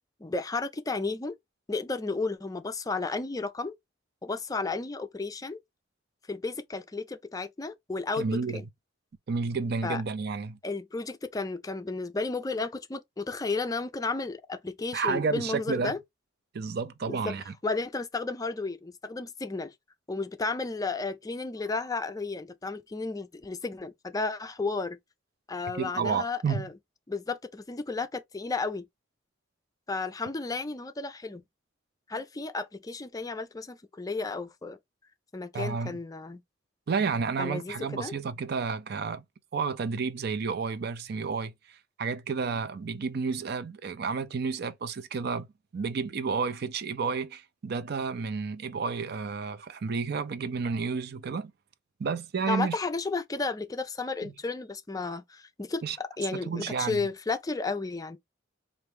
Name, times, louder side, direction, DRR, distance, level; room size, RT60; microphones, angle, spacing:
voice 1, 0.2-1.3 1.7-3.7 4.2-5.6 6.3-8.7 9.8-10.0 10.6-16.0 17.1-17.3 17.6-19.7 20.1-25.0 25.5-26.7 27.1-28.8 29.9-31.4 32.1-34.8 35.3-36.4 37.4-38.1 52.5-58.2, left 3 dB, 20° left, 0.4 m, -33 dB
voice 2, 8.2-8.6 9.3-10.6 14.9-15.9 16.5-17.5 25.7-26.7 35.5-36.0 36.9-39.2 39.5-45.5 45.7-51.5 52.0-52.8 55.8-56.0 56.3-57.0, right 5 dB, 55° right, 0.4 m, -31 dB
4.3 x 2.5 x 3.4 m
head